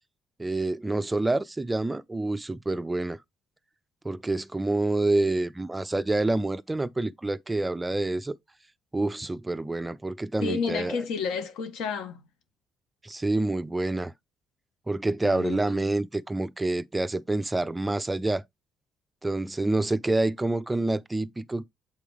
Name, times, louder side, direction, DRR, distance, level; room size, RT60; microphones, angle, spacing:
voice 1, 0.4-3.2 4.0-8.4 8.9-11.0 13.0-14.1 14.9-18.4 19.2-21.6, right 2 dB, 10° right, 0.3 m, -27 dB
voice 2, 10.4-12.2 15.2-15.8, left 5 dB, 80° left, 1.5 m, -31 dB
7.6 x 4.9 x 3.4 m
cardioid pair, 145°, 0 cm